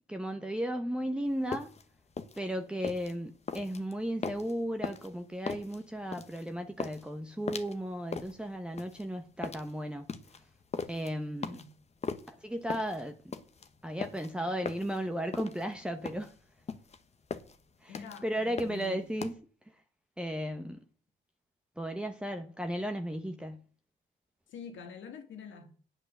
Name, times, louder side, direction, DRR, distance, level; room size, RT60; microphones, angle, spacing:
voice 1, 0.1-1.7 2.4-10.1 10.9-11.6 12.3-13.4 13.8-16.3 17.8-19.3 19.7-19.8 20.2-20.8 21.8-23.6, equal, 5° right, 1.0 m, -35 dB
sound 1, 1.3-19.3, left 5 dB, 35° left, 1.1 m, -40 dB
voice 2, 17.9-19.1 24.5-25.7, left 5 dB, 75° left, 2.2 m, -46 dB
8.9 x 7.9 x 6.6 m
cardioid pair, 90°, 20 cm